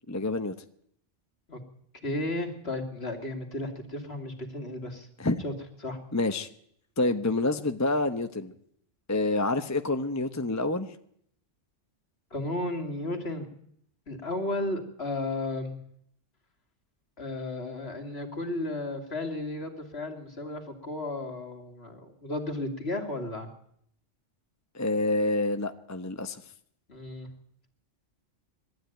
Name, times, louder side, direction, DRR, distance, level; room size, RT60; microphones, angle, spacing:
voice 1, 0.1-0.5 5.2-5.4 6.1-6.5 7.0-8.5 9.1-10.9 24.7-26.4, left 2 dB, 15° left, 8 dB, 0.8 m, -27 dB
voice 2, 2.0-5.1 5.4-5.5 5.8-6.0 12.3-13.5 14.1-15.8 17.2-23.5 26.9-27.3, left 2 dB, 55° left, 5 dB, 3.0 m, -34 dB
21.5 x 13.5 x 9.2 m, 0.70 s
omnidirectional pair, 1.3 m